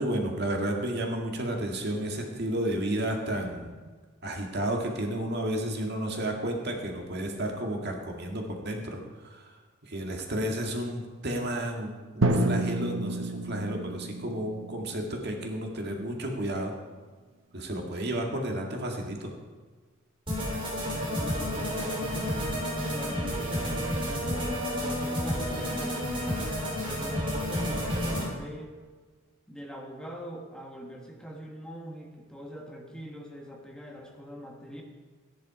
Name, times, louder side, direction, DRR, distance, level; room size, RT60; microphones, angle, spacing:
voice 1, 0.0-3.7 4.2-9.0 9.9-16.7 17.5-19.3, right 1 dB, 55° right, 2 dB, 2.0 m, -32 dB
Drum, 12.2-16.0, right 2 dB, 70° right, 1.1 m, -30 dB
sound 1, 20.3-28.3, equal, 25° right, 3.8 m, -30 dB
voice 2, 20.7-22.4 22.9-26.0 26.9-28.8 29.5-34.8, equal, 5° left, 0 dB, 1.4 m, -43 dB
14.5 x 10.5 x 4.9 m, 1.4 s
head